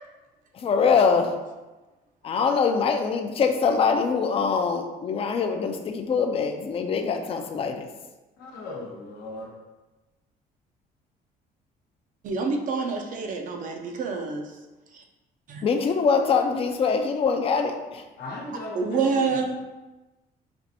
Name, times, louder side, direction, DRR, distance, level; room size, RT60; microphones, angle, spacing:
voice 1, 0.6-1.3 2.2-7.9 15.6-18.0, left 5 dB, 35° left, 5 dB, 0.4 m, -23 dB
voice 2, 8.4-9.5 18.2-19.4, left 2 dB, 80° left, -1 dB, 0.9 m, -37 dB
voice 3, 12.2-14.4 15.5-15.6 18.7-19.5, right 4 dB, 50° right, 3 dB, 0.5 m, -27 dB
4.3 x 2.5 x 2.7 m, 1.1 s
cardioid pair, 110°, 17 cm